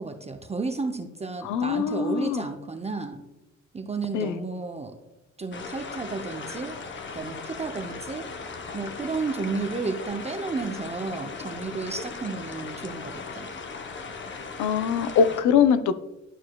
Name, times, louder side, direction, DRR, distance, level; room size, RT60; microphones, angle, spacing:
voice 1, 0.0-3.2 3.7-4.9 5.4-6.8 7.1-8.3 8.7-13.5, right 4 dB, 20° right, 5 dB, 0.6 m, -32 dB
voice 2, 1.4-2.5 4.1-4.4 14.6-15.9, left 7 dB, 80° left, 12 dB, 0.5 m, -22 dB
sound 1, 5.5-15.4, left 4 dB, 40° left, 0.7 m, -38 dB
11.5 x 4.5 x 2.2 m, 1.0 s
cardioid pair, 90°, 30 cm